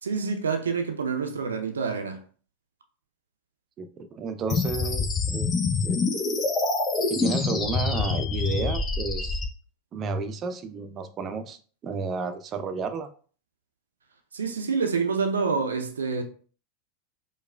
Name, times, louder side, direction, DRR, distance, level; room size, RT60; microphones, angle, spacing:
voice 1, 0.0-2.2 14.3-16.2, right 5 dB, 80° right, 0.5 m, -27 dB
voice 2, 3.8-5.6 5.8-6.1 7.1-9.4 9.9-13.1, right 4 dB, 35° right, 0.5 m, -32 dB
sound 1, 4.5-9.5, left 4 dB, 30° left, 0.6 m, -26 dB
4.7 x 2.3 x 2.2 m
hypercardioid pair, 85°, 0 cm